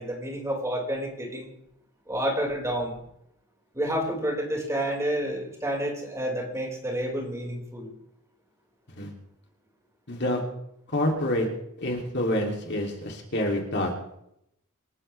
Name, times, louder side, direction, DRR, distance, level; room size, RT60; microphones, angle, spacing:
voice 1, 0.0-1.5 2.1-3.0 3.7-7.9, equal, 15° right, -1 dB, 5.0 m, -29 dB
voice 2, 10.1-10.4 10.9-11.5 11.8-13.9, left 1 dB, 50° left, 1 dB, 2.9 m, -27 dB
26.5 x 14.5 x 3.4 m, 0.79 s
head